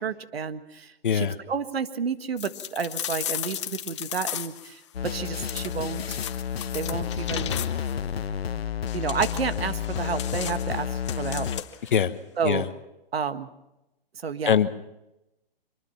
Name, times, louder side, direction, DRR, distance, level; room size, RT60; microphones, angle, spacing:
voice 1, 0.0-6.2 6.7-7.6 8.9-11.5 12.4-12.7 13.1-13.5 14.2-14.6, right 6 dB, 85° right, 10 dB, 1.7 m, -31 dB
voice 2, 1.0-1.3 11.9-12.1 12.4-12.7 14.5-14.9, left 8 dB, 55° left, 12 dB, 1.2 m, -22 dB
sound 1, 2.4-4.7 5.4-8.0 8.9-11.9, left 11 dB, 30° left, 0.9 m, -36 dB
sound 2, 4.9-11.6, left 8 dB, 85° left, 1.0 m, -31 dB
24.5 x 21.5 x 5.8 m, 0.93 s
hypercardioid pair, 165°, 30 cm